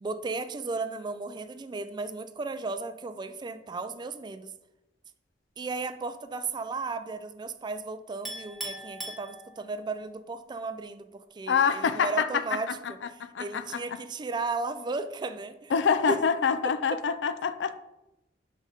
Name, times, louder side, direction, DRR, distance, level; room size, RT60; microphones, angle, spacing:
voice 1, 0.0-4.5 5.6-13.0 13.4-15.7 16.1-16.2 16.6-17.0, right 3 dB, 25° right, 0.3 m, -35 dB
Chink clink, 8.3-9.9, right 1 dB, ahead, 1.2 m, -39 dB
voice 2, 11.5-12.4 13.2-13.6 15.7-17.8, left 6 dB, 75° left, 0.4 m, -26 dB
5.2 x 5.1 x 3.8 m
head